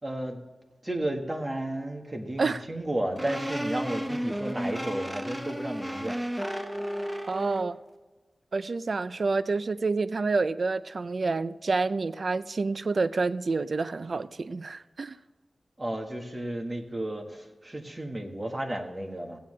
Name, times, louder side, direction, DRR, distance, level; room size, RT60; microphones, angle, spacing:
voice 1, 0.0-0.4 0.8-6.2 6.5-6.7 15.8-19.4, right 1 dB, 25° right, 1.5 m, -33 dB
sound 1, 3.2-7.7, equal, 5° right, 0.9 m, -33 dB
voice 2, 7.3-7.8 8.5-15.2, right 3 dB, 55° right, 0.4 m, -28 dB
15.5 x 9.2 x 3.2 m
wide cardioid pair, 110°, 0 cm